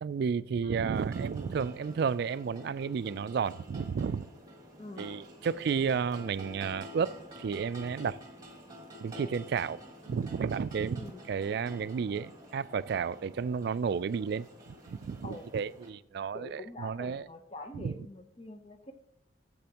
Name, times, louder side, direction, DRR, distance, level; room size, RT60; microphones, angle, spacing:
voice 1, 0.0-4.3 5.0-8.2 9.0-9.8 10.1-14.5 14.9-17.2 17.7-17.9, right 6 dB, 60° right, 0.3 m, -32 dB
voice 2, 0.6-1.0 1.3-1.6 4.8-5.2 10.9-11.3 15.2-15.5 16.3-18.9, left 2 dB, 30° left, 0.7 m, -46 dB
sound 1, 0.9-15.9, equal, 20° right, 1.6 m, -49 dB
14.0 x 7.8 x 2.9 m
head